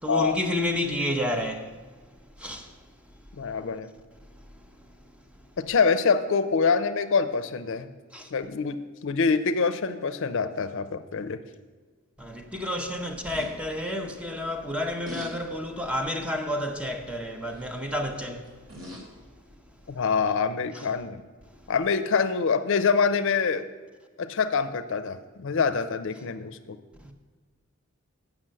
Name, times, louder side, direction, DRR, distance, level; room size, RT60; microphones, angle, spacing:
voice 1, 0.0-1.7 2.4-2.7 8.1-8.3 12.2-18.6 27.0-27.1, left 1 dB, 5° right, 0.8 m, -30 dB
voice 2, 3.4-3.9 5.7-7.9 8.3-8.8 9.0-11.4 19.9-21.2 21.7-23.7 24.2-26.8, left 5 dB, 65° left, 0.5 m, -25 dB
sound 1, 13.2-13.5 15.1-15.3 15.8-16.1 17.5-17.8 18.5-19.1 20.1-20.2, left 1 dB, 70° right, 2.2 m, -41 dB
7.6 x 6.1 x 7.5 m
head